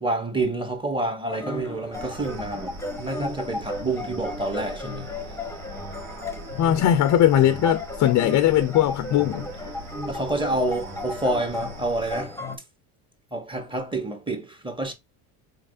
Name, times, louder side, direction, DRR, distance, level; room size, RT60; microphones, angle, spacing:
voice 1, 0.0-5.1 5.9-6.0 10.1-12.4 13.3-14.9, right 2 dB, 10° right, 1.3 m, -28 dB
sound 1, 1.3-12.6, left 2 dB, 5° left, 0.9 m, -35 dB
sound 2, 1.9-12.2, right 2 dB, 55° right, 1.3 m, -42 dB
voice 2, 6.6-9.5, left 11 dB, 40° left, 0.5 m, -19 dB
4.0 x 3.2 x 2.5 m
supercardioid pair, 85°, 45 cm